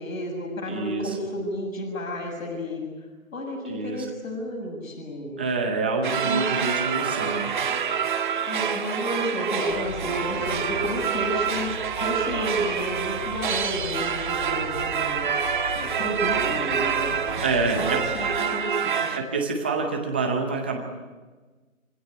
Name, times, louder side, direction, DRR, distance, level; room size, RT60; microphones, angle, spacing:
voice 1, 0.0-2.8 3.3-5.4 6.2-6.5 8.5-15.3 15.7-17.2 17.8-19.2, equal, 75° left, 2 dB, 7.2 m, -31 dB
voice 2, 0.7-1.1 3.7-4.0 5.4-7.5 17.4-18.0 19.1-20.8, right 4 dB, 10° right, 2 dB, 0.7 m, -27 dB
sound 1, 6.0-19.2, right 7 dB, 35° right, 1.5 m, -27 dB
sound 2, 9.7-18.4, left 2 dB, 30° left, 3.9 m, -40 dB
26.0 x 16.0 x 9.6 m, 1.3 s
hypercardioid pair, 165°, 41 cm